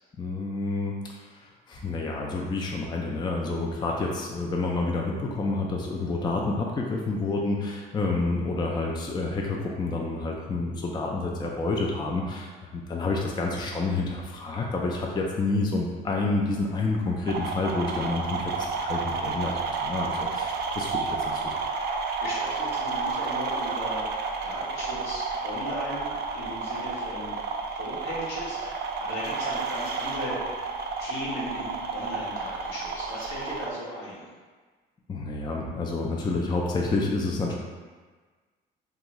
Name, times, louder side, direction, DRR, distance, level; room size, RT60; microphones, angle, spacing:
voice 1, 0.2-21.7 35.1-37.6, left 3 dB, 20° left, -1 dB, 0.4 m, -29 dB
sound 1, 17.2-33.7, right 4 dB, 55° right, 0.4 m, -31 dB
voice 2, 21.9-30.5 31.0-34.3, left 1 dB, 75° left, -7 dB, 1.1 m, -37 dB
2.5 x 2.3 x 2.9 m, 1.4 s
supercardioid pair, 70°, 21 cm